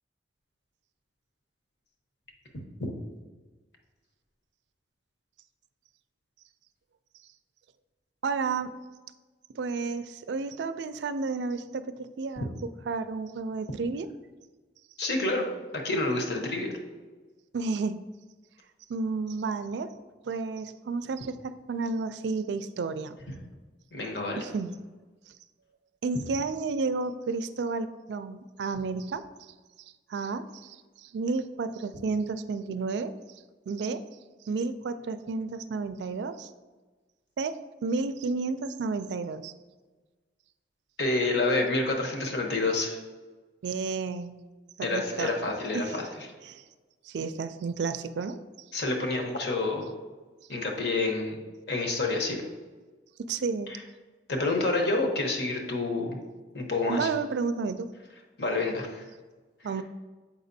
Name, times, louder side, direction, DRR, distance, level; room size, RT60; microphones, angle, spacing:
voice 1, 8.2-8.7 9.5-12.5 12.9-14.1 17.5-18.0 18.9-19.9 20.2-23.2 24.4-24.8 25.3-25.4 26.0-29.5 30.1-33.1 33.7-34.0 34.5-36.5 37.4-39.5 43.6-44.4 44.8-45.3 45.7-46.0 46.4-46.6 47.0-48.4 53.2-53.7 56.9-57.9 59.6-59.8, right 4 dB, 75° right, 12 dB, 0.3 m, -31 dB
voice 2, 15.0-15.4 15.7-16.7 23.9-24.4 41.0-43.0 44.8-46.0 48.7-49.9 50.5-51.4 51.7-52.4 53.7-53.8 54.3-56.2 56.5-57.1 58.4-59.0, left 2 dB, 65° left, 2 dB, 1.0 m, -28 dB
7.2 x 5.1 x 2.7 m, 1.3 s
head